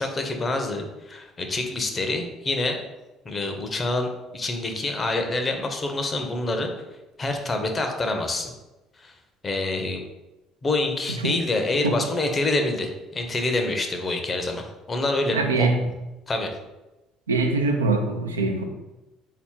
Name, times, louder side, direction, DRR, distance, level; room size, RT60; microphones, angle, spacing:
voice 1, 0.0-2.8 3.2-6.7 7.2-8.5 9.0-9.1 9.4-10.0 10.6-15.7 16.3-16.5, left 2 dB, 30° left, 4 dB, 0.7 m, -26 dB
voice 2, 15.3-15.9 17.3-18.6, right 3 dB, 85° right, 3 dB, 0.4 m, -23 dB
4.1 x 2.8 x 3.6 m, 1.0 s
figure-of-eight pair, 55°, 0 cm